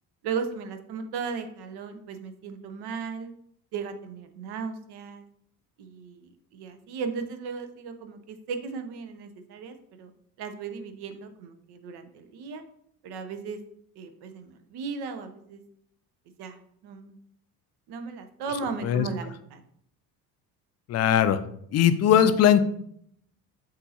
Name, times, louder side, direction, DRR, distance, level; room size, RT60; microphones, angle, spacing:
voice 1, 0.2-3.3 3.7-5.2 5.8-10.1 10.4-12.6 13.0-13.6 14.0-15.6 16.4-17.1 17.9-19.6, right 5 dB, 55° right, 8 dB, 0.8 m, -36 dB
voice 2, 20.9-21.4 21.7-22.6, left 9 dB, 35° left, 11 dB, 0.5 m, -19 dB
7.5 x 2.5 x 2.8 m, 0.67 s
hypercardioid pair, 55°, 47 cm